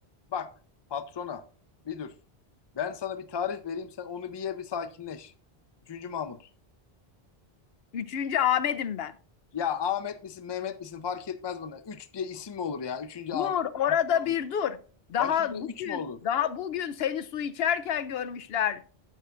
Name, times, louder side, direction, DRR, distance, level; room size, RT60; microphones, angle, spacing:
voice 1, 0.9-1.4 1.8-2.1 2.7-5.3 5.9-6.5 9.5-13.6 14.1-14.3 15.2-16.2, left 7 dB, 35° left, 0.5 m, -34 dB
voice 2, 7.9-9.1 13.3-14.8 15.1-18.8, left 9 dB, 80° left, 0.8 m, -28 dB
11.5 x 8.0 x 2.5 m
omnidirectional pair, 1.0 m